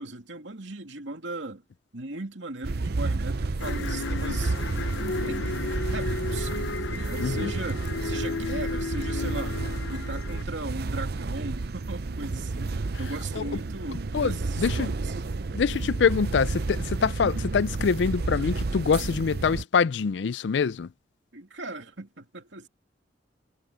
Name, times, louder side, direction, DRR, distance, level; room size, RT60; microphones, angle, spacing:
voice 1, 0.0-1.6 1.9-4.6 5.2-5.5 5.9-6.5 6.9-9.6 9.9-15.1 21.3-22.7, right 2 dB, 80° right, 2.6 m, -38 dB
sound 1, 2.6-19.6, right 3 dB, 60° right, 0.7 m, -31 dB
sound 2, 3.6-10.4, left 3 dB, 85° left, 0.8 m, -34 dB
voice 2, 7.2-7.5 13.3-13.4 14.1-14.9 15.5-20.9, left 5 dB, 70° left, 0.4 m, -25 dB
head